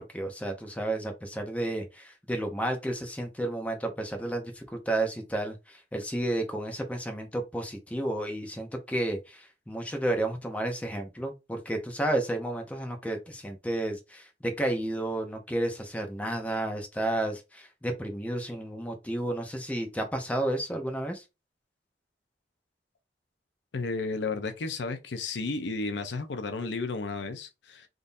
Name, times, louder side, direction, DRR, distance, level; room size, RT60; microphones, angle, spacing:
voice 1, 0.0-21.2, right 1 dB, 10° left, 0.6 m, -32 dB
voice 2, 23.7-27.9, left 3 dB, 85° left, 0.6 m, -33 dB
3.7 x 2.6 x 2.6 m
head